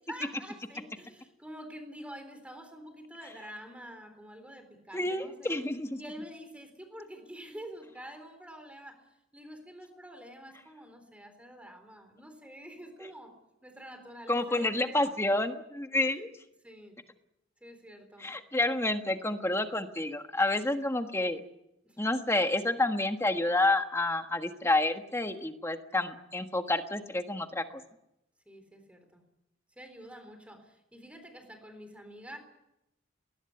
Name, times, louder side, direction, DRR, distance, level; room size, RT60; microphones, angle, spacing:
voice 1, 0.1-5.5 6.0-9.0 9.3-13.3 13.6-15.1 16.0-16.2 16.6-17.0 17.6-18.3 21.8-22.0 28.5-29.2 29.8-32.4, equal, 5° right, 6 dB, 3.8 m, -47 dB
voice 2, 4.9-6.0 14.3-16.3 18.2-21.4 22.0-27.6, left 2 dB, 15° left, 6 dB, 1.4 m, -29 dB
21.0 x 19.5 x 9.7 m, 0.87 s
head